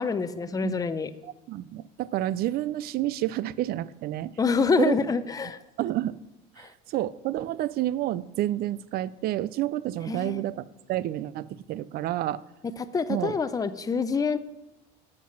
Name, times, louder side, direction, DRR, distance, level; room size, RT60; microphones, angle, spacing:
voice 1, 0.0-1.1 4.4-5.6 6.6-6.7 10.1-10.4 12.9-14.4, left 5 dB, 20° left, 12 dB, 0.6 m, -26 dB
voice 2, 1.2-4.4 4.8-5.0 5.8-6.2 6.6-10.6 10.9-12.4 13.1-13.4, right 14 dB, 60° right, 19 dB, 0.4 m, -29 dB
7.4 x 7.0 x 6.0 m, 0.95 s
supercardioid pair, 100°, 18 cm